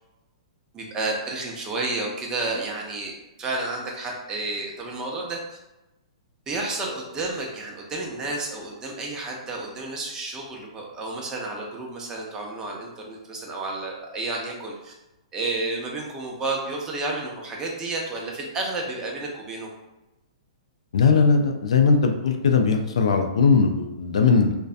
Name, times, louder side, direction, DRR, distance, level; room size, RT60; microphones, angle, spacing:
voice 1, 0.7-3.1 3.4-5.6 6.5-14.9 15.3-19.7, right 2 dB, 20° right, -1 dB, 0.6 m, -31 dB
voice 2, 20.9-24.6, left 5 dB, 75° left, 4 dB, 0.4 m, -19 dB
2.6 x 2.1 x 2.4 m, 0.98 s
hypercardioid pair, 125°, 3 cm